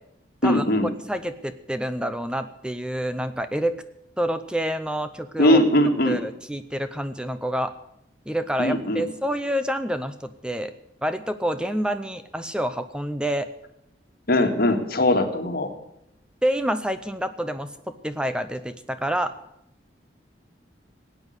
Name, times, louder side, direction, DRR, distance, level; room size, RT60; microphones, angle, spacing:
voice 1, 0.4-0.9 5.4-6.2 8.6-9.0 14.3-15.7, left 1 dB, 55° left, 5 dB, 2.1 m, -20 dB
voice 2, 1.1-3.7 4.2-5.6 6.0-7.7 8.3-10.7 11.0-13.5 16.4-17.7 18.0-19.3, equal, 5° right, 10 dB, 0.6 m, -27 dB
17.5 x 9.3 x 8.1 m, 0.80 s
head